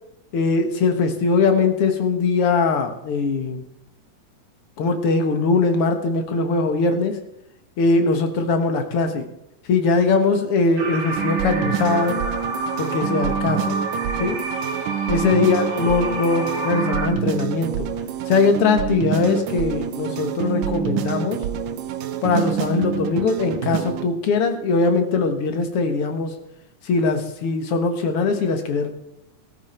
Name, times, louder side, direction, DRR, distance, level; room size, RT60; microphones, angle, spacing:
voice 1, 0.3-3.6 4.8-7.2 7.8-9.3 9.7-12.2 12.8-13.8 14.2-14.4 15.1-17.9 18.3-21.4 22.2-26.3 26.8-28.9, left 4 dB, 55° left, 7 dB, 2.1 m, -21 dB
sound 1, 10.8-17.1, right 2 dB, 70° right, 3.8 m, -29 dB
sound 2, 11.2-24.1, right 9 dB, 90° right, 2.5 m, -27 dB
14.5 x 14.0 x 4.5 m, 0.82 s
omnidirectional pair, 3.6 m